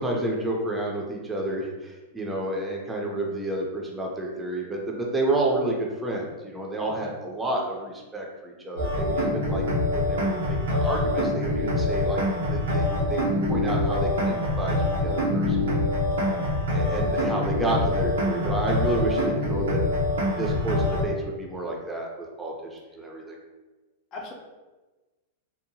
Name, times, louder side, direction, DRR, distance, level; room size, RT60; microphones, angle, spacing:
voice 1, 0.0-9.6 9.9-12.2 12.5-12.8 13.1-15.6 16.7-19.8 20.4-23.4, right 2 dB, 10° right, -1 dB, 0.5 m, -30 dB
voice 2, 6.9-7.1 16.2-16.5 17.1-17.3 23.1-23.4 24.1-24.3, left 2 dB, 35° left, -3 dB, 0.6 m, -42 dB
sound 1, 8.8-21.0, left 1 dB, 80° right, 0.7 m, -25 dB
2.7 x 2.0 x 2.7 m, 1.2 s
hypercardioid pair, 135°, 0 cm